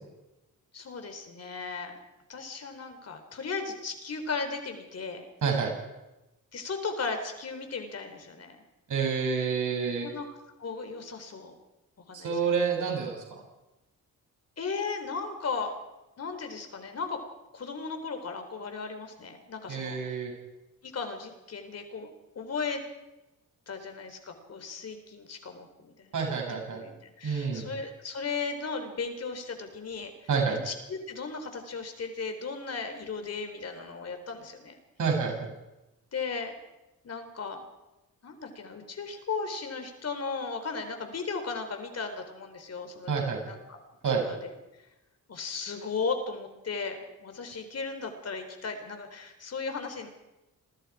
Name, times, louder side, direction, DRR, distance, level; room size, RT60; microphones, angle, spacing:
voice 1, 0.7-2.0 2.3-5.3 6.5-8.6 10.0-11.5 12.1-12.4 14.6-15.7 16.2-17.2 17.5-20.2 20.8-22.1 22.4-22.8 23.7-30.1 30.5-34.8 36.1-36.6 37.0-37.6 38.2-44.5 45.3-50.1, left 4 dB, 45° left, 6 dB, 3.8 m, -36 dB
voice 2, 5.4-5.7 8.9-10.1 12.1-13.4 19.7-20.3 26.1-26.8 27.2-27.6 30.3-30.6 35.0-35.5 43.1-43.4 44.0-44.2, right 5 dB, 60° right, 0 dB, 7.3 m, -28 dB
28.5 x 22.0 x 4.9 m, 1.0 s
wide cardioid pair, 160°, 35 cm